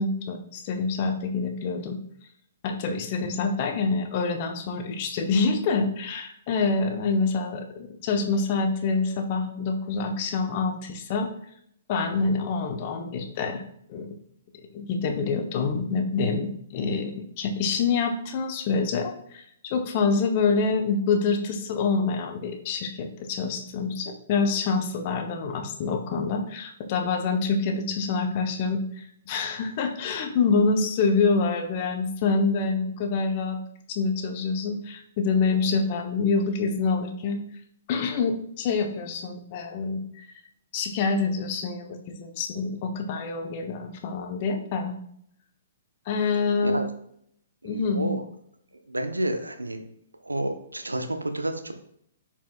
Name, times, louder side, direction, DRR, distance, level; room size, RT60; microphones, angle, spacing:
voice 1, 0.0-2.0 2.6-11.3 11.9-13.6 13.9-14.1 14.7-33.6 33.9-37.4 37.9-40.0 40.7-45.0 46.1-46.8 47.6-48.1, left 4 dB, 40° left, 4 dB, 0.9 m, -26 dB
voice 2, 47.6-48.2 48.9-49.8 50.2-51.7, right 1 dB, 80° right, 7 dB, 0.7 m, -30 dB
10.0 x 4.6 x 2.3 m, 0.69 s
figure-of-eight pair, 115°, 0 cm